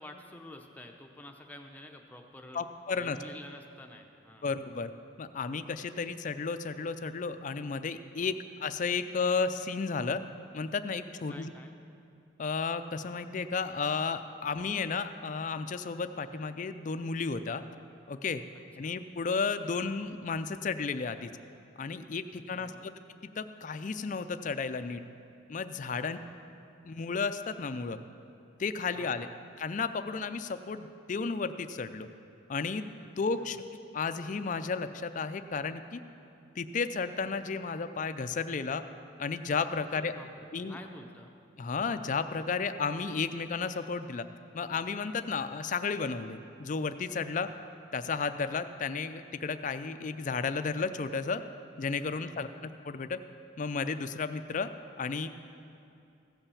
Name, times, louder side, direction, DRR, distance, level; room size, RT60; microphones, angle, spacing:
voice 1, 0.0-2.6 3.0-4.5 8.2-8.4 11.3-11.7 18.8-18.9 22.6-22.9 26.0-26.4 28.9-29.3 33.4-33.6 39.9-41.3 47.4-47.5 52.2-52.6, left 1 dB, 10° left, 3 dB, 0.7 m, -49 dB
voice 2, 2.5-3.2 4.4-4.9 5.2-8.3 8.6-10.2 10.5-11.5 12.4-17.6 18.1-18.4 18.8-21.3 21.8-22.7 23.2-25.0 25.5-26.2 26.8-28.0 28.6-29.3 29.6-32.1 32.5-32.9 33.2-33.6 33.9-36.0 36.6-38.8 39.2-40.1 40.5-40.8 41.6-44.2 44.5-47.5 47.9-51.4 51.8-53.2 53.6-54.7 55.0-55.3, left 4 dB, 40° left, 10 dB, 0.4 m, -33 dB
15.5 x 5.7 x 7.0 m, 2.6 s
head